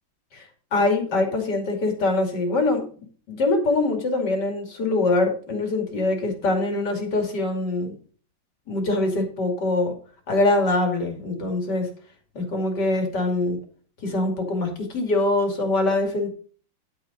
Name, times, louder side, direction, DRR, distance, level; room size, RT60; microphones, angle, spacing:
voice 1, 0.7-2.8 3.3-7.9 8.7-9.9 10.3-11.9 12.3-13.6 14.0-16.3, left 2 dB, 60° left, 3 dB, 3.1 m, -23 dB
11.0 x 5.8 x 5.3 m, 0.43 s
omnidirectional pair, 2.1 m